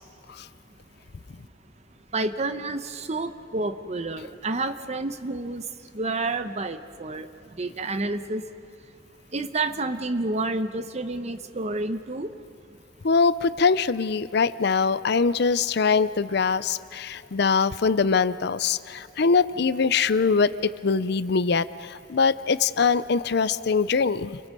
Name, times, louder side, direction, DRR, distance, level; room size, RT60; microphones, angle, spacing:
voice 1, 2.1-5.6 5.9-7.3 7.6-8.4 9.3-12.3, right 2 dB, 35° right, 10 dB, 0.9 m, -29 dB
voice 2, 13.0-24.4, left 5 dB, 60° left, 15 dB, 0.5 m, -23 dB
29.5 x 24.0 x 5.4 m, 2.7 s
head